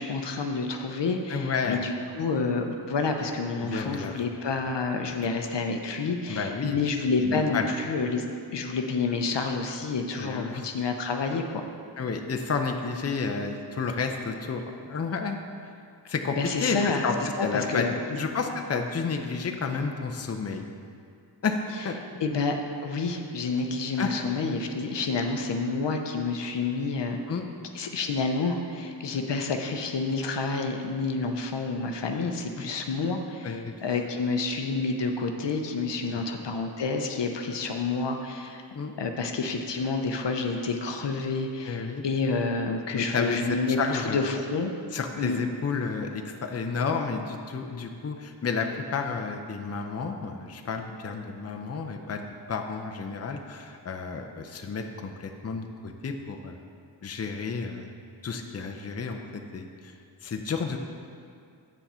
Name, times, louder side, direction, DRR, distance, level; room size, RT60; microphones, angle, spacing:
voice 1, 0.0-8.2 8.5-11.6 16.3-17.0 17.4-18.2 22.2-22.6 22.8-27.2 27.7-38.6 39.0-44.7 45.2-45.4, left 4 dB, 70° left, 4 dB, 0.7 m, -29 dB
voice 2, 1.3-1.8 3.6-4.1 5.1-5.2 6.3-6.8 7.2-7.7 10.2-10.7 12.0-15.4 16.1-20.7 21.4-22.0 24.0-24.2 27.3-27.4 32.6-32.7 33.4-33.7 36.1-36.2 38.7-38.9 41.7-42.0 42.9-44.2 44.9-52.2 52.5-56.6 57.0-57.9 58.2-59.2 59.5-59.9 60.2-60.8, left 5 dB, 35° left, 3 dB, 0.6 m, -31 dB
8.1 x 5.8 x 4.3 m, 2.3 s
wide cardioid pair, 60°, 44 cm